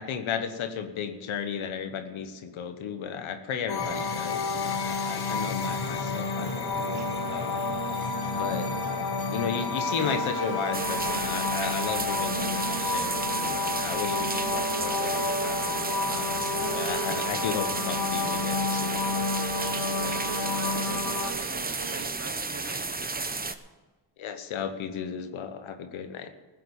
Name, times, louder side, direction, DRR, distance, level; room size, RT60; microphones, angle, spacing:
voice 1, 0.0-7.7 8.4-8.7 9.3-19.1 24.2-26.3, left 7 dB, 85° left, 8 dB, 1.3 m, -34 dB
sound 1, 3.7-21.3, left 4 dB, 55° left, 1.4 m, -30 dB
Buzz, 6.4-22.1, right 7 dB, 70° right, 1.0 m, -39 dB
sound 2, 10.7-23.5, right 3 dB, 20° right, 1.0 m, -32 dB
voice 2, 19.9-23.3, right 3 dB, 35° right, 2 dB, 2.8 m, -44 dB
15.0 x 7.7 x 7.1 m, 1.3 s
supercardioid pair, 55°, 47 cm